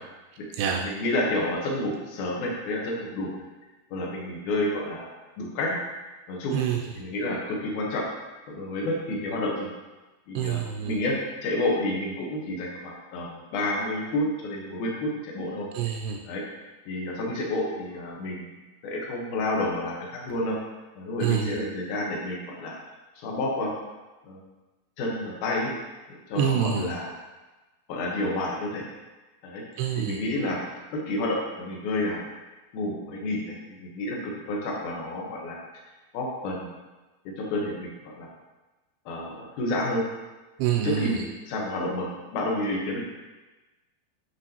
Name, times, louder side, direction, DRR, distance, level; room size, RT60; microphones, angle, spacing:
voice 1, 0.8-3.4 3.9-5.1 5.4-5.8 6.3-6.6 7.0-8.0 8.5-9.7 10.3-10.6 10.9-15.7 16.3-16.4 16.9-18.5 18.8-20.6 21.0-22.7 23.2-23.8 24.2-24.4 25.0-25.7 26.1-27.1 27.9-28.8 29.4-30.6 30.9-32.3 32.7-35.6 36.1-36.7 37.3-38.3 39.1-40.1 40.8-43.0, left 1 dB, 65° left, -2 dB, 2.1 m, -30 dB
voice 2, 10.4-10.9 15.7-16.2 21.2-21.6 26.4-26.9 29.8-30.2 40.6-41.2, right 9 dB, 80° right, 2 dB, 2.4 m, -26 dB
7.8 x 5.9 x 2.9 m, 1.2 s
omnidirectional pair, 5.0 m